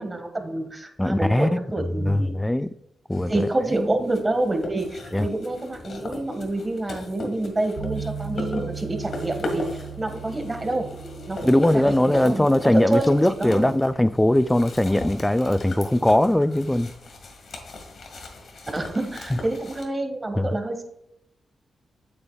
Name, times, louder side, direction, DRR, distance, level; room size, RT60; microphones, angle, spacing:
voice 1, 0.0-2.3 3.3-9.6 10.0-10.9 11.3-13.7 18.7-20.8, right 2 dB, 30° right, 1.7 m, -28 dB
voice 2, 1.0-1.6 2.0-2.7 3.1-3.9 5.1-5.3 11.4-16.9 19.3-19.4 20.4-20.5, left 1 dB, 10° left, 0.4 m, -20 dB
sound 1, 3.1-19.8, left 1 dB, 65° left, 1.9 m, -38 dB
sound 2, 7.8-15.9, right 6 dB, 80° right, 1.0 m, -39 dB
8.7 x 8.0 x 2.4 m
supercardioid pair, 50°, 0 cm